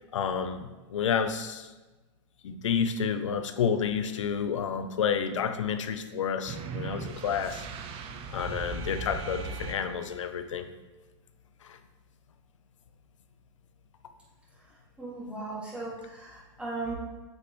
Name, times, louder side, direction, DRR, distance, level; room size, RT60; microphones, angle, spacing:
voice 1, 0.1-1.7 2.4-7.7 8.3-10.7 11.6-11.8, left 7 dB, 90° left, 10 dB, 0.6 m, -30 dB
sound 1, 6.5-10.3, right 4 dB, 35° right, 0.7 m, -38 dB
voice 2, 14.6-16.9, right 3 dB, 5° right, -7 dB, 2.4 m, -38 dB
8.1 x 5.1 x 3.1 m, 1.2 s
hypercardioid pair, 120°, 16 cm